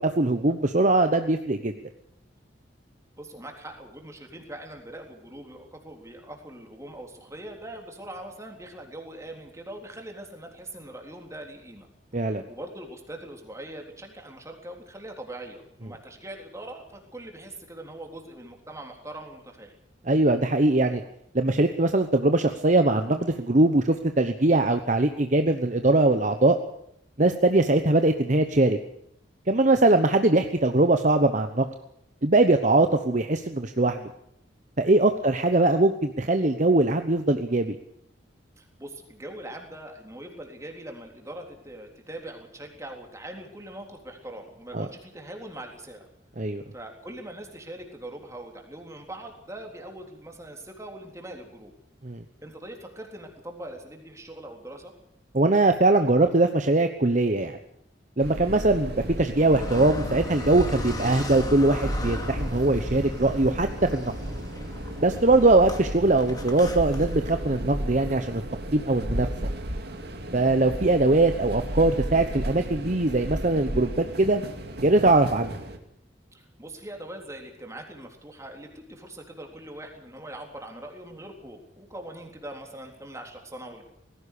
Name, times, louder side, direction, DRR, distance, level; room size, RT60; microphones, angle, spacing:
voice 1, 0.0-1.7 12.1-12.4 20.1-21.0 21.3-26.6 27.2-28.8 29.5-31.7 32.2-34.0 34.8-37.8 44.7-44.9 46.4-46.6 52.0-52.2 55.3-57.6 58.2-64.1 65.0-68.4 68.7-69.3 70.3-74.4 74.8-75.6, right 2 dB, 40° right, 7 dB, 1.1 m, -21 dB
voice 2, 3.2-11.9 12.2-19.7 35.1-35.3 38.6-46.1 46.7-51.7 52.4-54.9 65.2-65.5 76.3-83.8, right 1 dB, 15° right, 2 dB, 3.7 m, -42 dB
sound 1, 58.2-75.8, right 1 dB, 60° right, 2.5 m, -34 dB
Car, 59.4-67.6, left 1 dB, 20° left, 2.6 m, -37 dB
19.0 x 16.0 x 8.5 m, 0.73 s
head